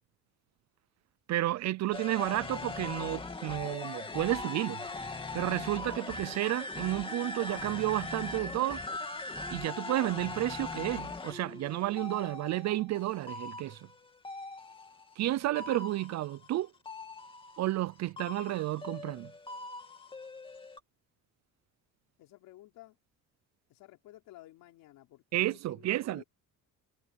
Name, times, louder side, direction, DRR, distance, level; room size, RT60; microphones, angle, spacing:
voice 1, 1.3-4.8 5.3-8.8 9.5-13.8 15.2-16.7 17.6-19.3 25.3-26.2, right 15 dB, 55° right, 0.6 m, -31 dB
sound 1, 1.9-15.2 15.5-17.9 18.2-20.8, left 3 dB, 15° left, 2.4 m, -41 dB
voice 2, 22.2-23.0 23.7-26.2, left 15 dB, 85° left, 3.9 m, -54 dB
cardioid pair, 155°, 33 cm